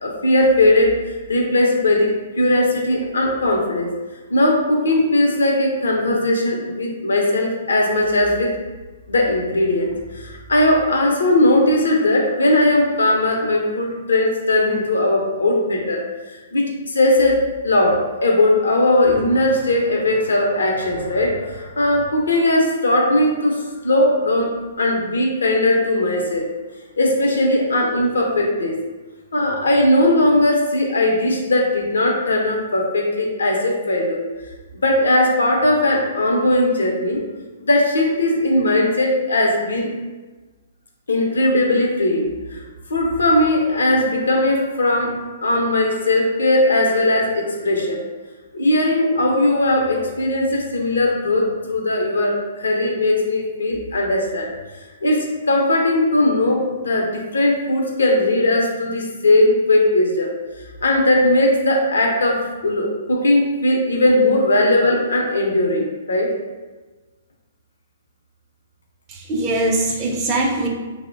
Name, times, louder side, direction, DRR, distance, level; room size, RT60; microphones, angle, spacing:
voice 1, 0.0-2.1 2.4-3.9 4.3-8.5 9.1-16.0 16.3-26.5 27.0-28.8 29.3-34.2 34.8-37.2 37.6-39.9 41.1-42.6 42.9-48.0 48.5-54.5 55.0-60.3 60.8-66.3, left 1 dB, 80° left, 0 dB, 0.5 m, -18 dB
voice 2, 69.1-70.7, right 2 dB, 30° right, 0 dB, 0.5 m, -21 dB
2.9 x 2.0 x 2.4 m, 1.2 s
hypercardioid pair, 125°, 0 cm